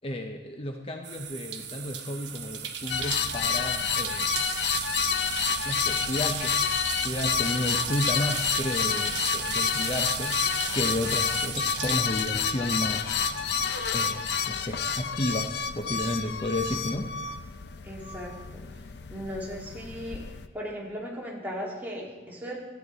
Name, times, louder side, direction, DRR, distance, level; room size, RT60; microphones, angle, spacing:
voice 1, 0.0-4.4 5.7-6.6 7.0-10.4 10.7-13.2 13.9-17.1, left 1 dB, 30° left, 4 dB, 0.6 m, -32 dB
sound 1, 1.0-15.1 15.4-16.6, right 8 dB, 75° right, 1.1 m, -36 dB
sound 2, 2.9-20.5, left 6 dB, 70° left, 0.5 m, -29 dB
voice 2, 17.8-18.6 19.1-20.2 20.5-22.6, equal, 10° right, -4 dB, 2.2 m, -37 dB
13.5 x 9.2 x 4.0 m, 1.4 s
head